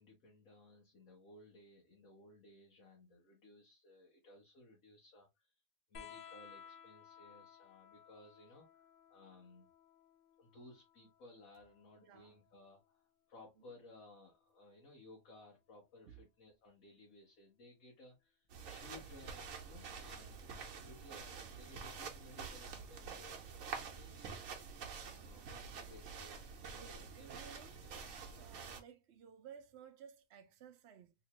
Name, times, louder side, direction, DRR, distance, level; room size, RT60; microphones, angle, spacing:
voice 1, 0.0-5.5 5.9-9.7 10.4-20.4 20.7-27.9, left 2 dB, 80° left, 1.4 m, -60 dB
sound 1, 5.9-13.0 14.4-15.2 16.5-16.6, left 7 dB, 50° left, 0.8 m, -59 dB
voice 2, 12.0-12.4 13.6-13.7 16.1-16.2 26.7-27.8 28.3-31.1, right 8 dB, 60° right, 0.9 m, -57 dB
sound 2, 18.5-28.8, right 5 dB, 75° right, 1.2 m, -48 dB
3.2 x 2.9 x 2.9 m
omnidirectional pair, 1.4 m